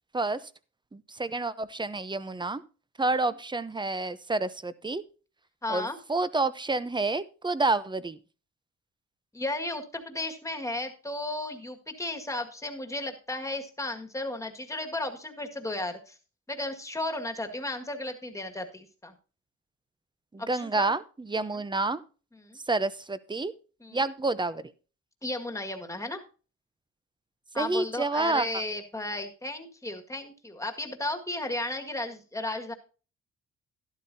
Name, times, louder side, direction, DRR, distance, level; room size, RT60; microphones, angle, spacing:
voice 1, 0.9-2.6 3.0-5.0 5.7-8.2 20.3-22.0 22.7-23.5 23.9-24.6 27.6-28.5, right 3 dB, 15° right, 16 dB, 0.7 m, -29 dB
voice 2, 5.6-6.0 9.3-16.1 16.5-19.1 20.4-20.9 22.4-22.6 23.8-24.0 25.2-26.2 27.5-32.7, left 2 dB, 10° left, 5 dB, 1.8 m, -34 dB
12.0 x 11.5 x 2.7 m, 0.36 s
cardioid pair, 90°, 30 cm